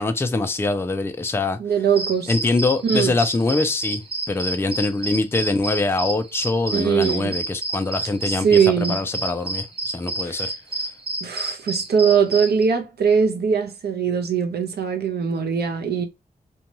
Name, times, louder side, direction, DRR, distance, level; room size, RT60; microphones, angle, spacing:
voice 1, 0.0-1.6 2.3-4.0 4.3-10.5, left 3 dB, 15° left, 0.3 m, -23 dB
voice 2, 1.6-2.3 2.8-3.1 6.7-7.4 8.4-9.0 10.2-10.5 11.2-16.0, right 6 dB, 85° right, 0.6 m, -21 dB
sound 1, 2.0-12.6, right 2 dB, 35° right, 0.7 m, -29 dB
2.6 x 2.2 x 2.8 m
wide cardioid pair, 150°, 16 cm